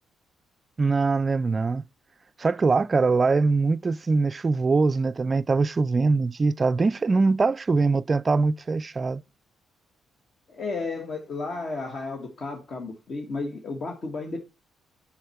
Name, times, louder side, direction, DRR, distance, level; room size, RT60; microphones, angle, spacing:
voice 1, 0.8-1.8 2.4-9.2, right 3 dB, 30° right, 0.3 m, -22 dB
voice 2, 10.5-14.4, left 3 dB, 50° left, 1.6 m, -33 dB
7.8 x 5.9 x 4.3 m
cardioid pair, 90°, 0 cm